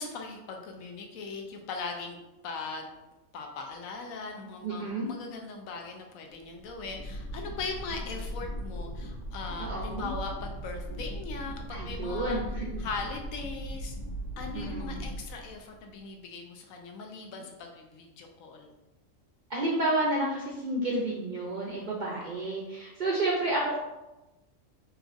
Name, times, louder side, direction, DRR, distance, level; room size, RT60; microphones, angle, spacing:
voice 1, 0.0-2.2 2.4-3.0 3.3-12.4 12.8-13.9 14.4-18.7 21.9-22.0, left 4 dB, 90° left, 3 dB, 1.0 m, -39 dB
voice 2, 4.6-5.1 9.6-10.1 11.7-12.8 14.5-15.0 19.5-23.8, right 2 dB, 60° right, -3 dB, 0.5 m, -30 dB
sound 1, 6.4-15.9, equal, 20° left, 1.0 m, -38 dB
4.2 x 2.4 x 2.5 m, 1.0 s
omnidirectional pair, 1.4 m